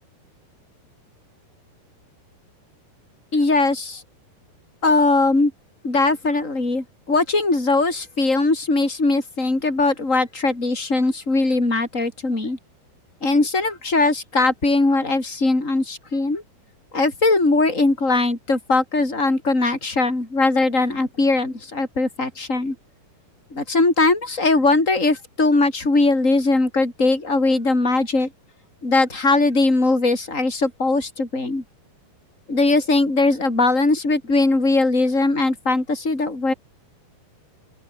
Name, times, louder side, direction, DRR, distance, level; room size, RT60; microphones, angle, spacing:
voice 1, 3.3-4.0 4.8-5.5 5.8-12.6 13.2-16.4 16.9-22.8 23.5-28.3 28.8-31.6 32.5-36.5, left 3 dB, 15° left, 7.1 m, -20 dB
open air
omnidirectional pair, 4.9 m